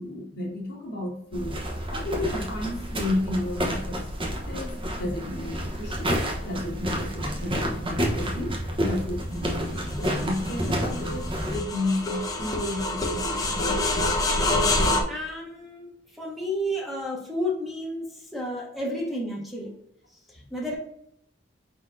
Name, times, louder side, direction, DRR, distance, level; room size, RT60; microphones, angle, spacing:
voice 1, 0.0-13.5, left 1 dB, 60° left, -1 dB, 1.4 m, -32 dB
sound 1, 1.3-11.6, equal, 30° right, 1.0 m, -30 dB
sound 2, 9.3-15.0, left 2 dB, 20° left, 0.7 m, -27 dB
voice 2, 15.1-19.7 20.3-20.8, equal, ahead, -4 dB, 1.0 m, -32 dB
4.7 x 3.9 x 2.7 m, 0.73 s
head